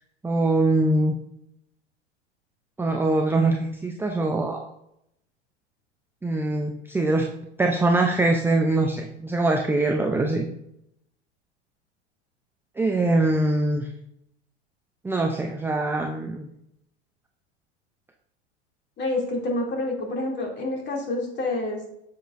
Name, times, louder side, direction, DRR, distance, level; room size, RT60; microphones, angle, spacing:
voice 1, 0.2-1.1 2.8-4.6 6.2-7.3 7.6-10.5 12.8-13.9 15.0-16.5, right 2 dB, 5° right, 2 dB, 0.5 m, -23 dB
voice 2, 19.0-21.9, left 2 dB, 30° left, 0 dB, 2.6 m, -28 dB
8.9 x 7.1 x 2.5 m, 0.77 s
hypercardioid pair, 105°, 36 cm